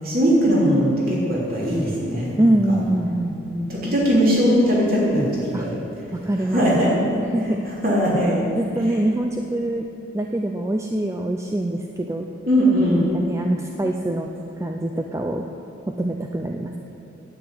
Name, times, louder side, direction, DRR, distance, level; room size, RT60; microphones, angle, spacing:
voice 1, 0.0-2.5 3.4-5.7 6.5-6.9 7.8-8.4 12.5-13.0, equal, 45° right, -6 dB, 3.3 m, -20 dB
voice 2, 2.4-3.4 5.5-5.7 6.1-6.9 7.3-7.7 8.5-9.9 10.1-12.3 12.9-14.3 14.6-15.4 15.9-16.8, right 1 dB, 15° right, 3 dB, 0.4 m, -24 dB
9.8 x 8.3 x 8.8 m, 2.8 s
head